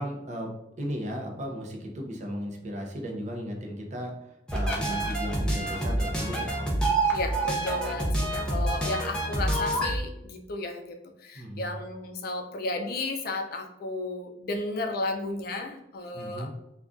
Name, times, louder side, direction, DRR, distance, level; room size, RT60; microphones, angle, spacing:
voice 1, 0.0-6.6 11.3-11.7 16.1-16.5, equal, 40° right, 1 dB, 0.5 m, -36 dB
sound 1, 4.5-10.0, right 2 dB, 5° left, 0.6 m, -27 dB
voice 2, 7.1-16.5, left 2 dB, 55° left, 5 dB, 0.4 m, -33 dB
2.4 x 2.2 x 3.5 m, 0.83 s
head